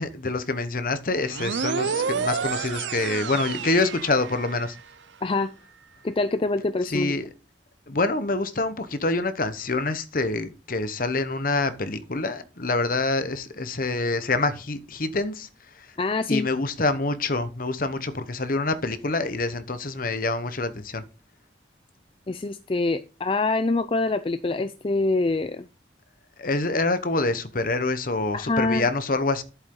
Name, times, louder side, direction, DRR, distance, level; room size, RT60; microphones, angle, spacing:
voice 1, 0.0-4.8 6.8-7.3 7.9-15.5 15.7-15.9 16.3-21.0 26.4-29.4, left 3 dB, 50° left, 1.0 m, -26 dB
sound 1, 1.3-4.8, right 6 dB, 80° right, 0.5 m, -29 dB
voice 2, 5.2-5.5 6.0-7.1 16.0-16.5 22.3-25.7 28.3-28.8, left 3 dB, 30° left, 0.4 m, -25 dB
11.0 x 8.1 x 3.8 m
head